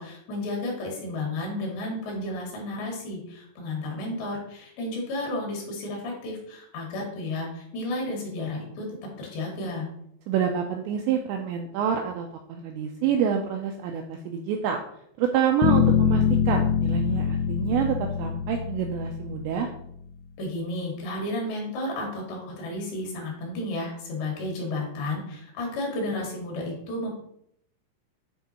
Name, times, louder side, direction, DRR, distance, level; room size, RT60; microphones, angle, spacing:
voice 1, 0.0-9.9 20.4-27.1, left 2 dB, 65° left, -1 dB, 3.9 m, -32 dB
voice 2, 10.3-14.8 15.2-19.7, right 8 dB, 85° right, 3 dB, 2.6 m, -27 dB
sound 1, 15.6-19.7, left 8 dB, 85° left, 3.0 m, -24 dB
9.4 x 3.8 x 4.3 m, 0.71 s
omnidirectional pair, 5.7 m